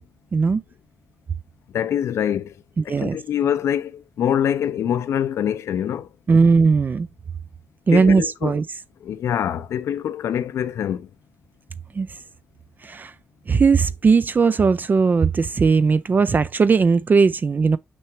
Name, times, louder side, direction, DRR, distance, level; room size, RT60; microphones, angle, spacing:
voice 1, 1.7-2.5 2.8-6.1 7.9-8.5 9.0-11.1, left 9 dB, 90° left, 0.6 m, -24 dB
voice 2, 2.8-3.2 6.3-7.1 7.9-8.6 12.0-12.1 12.8-13.1 13.5-17.8, right 5 dB, 40° right, 0.4 m, -18 dB
6.1 x 5.7 x 3.1 m
cardioid pair, 75°, 5 cm